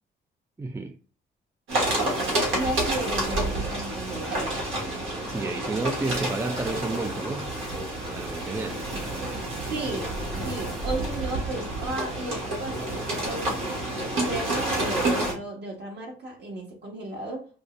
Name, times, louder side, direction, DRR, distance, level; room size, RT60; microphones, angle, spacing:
voice 1, 0.6-0.9 5.3-7.5 8.1-8.9, right 2 dB, 15° right, 0.3 m, -31 dB
sound 1, 1.7-15.3, right 1 dB, 80° right, 1.4 m, -29 dB
voice 2, 2.5-4.6 9.6-10.1 10.4-13.8 14.2-17.5, right 2 dB, 55° right, 1.4 m, -34 dB
5.0 x 2.1 x 2.5 m
cardioid pair, 90°, 20 cm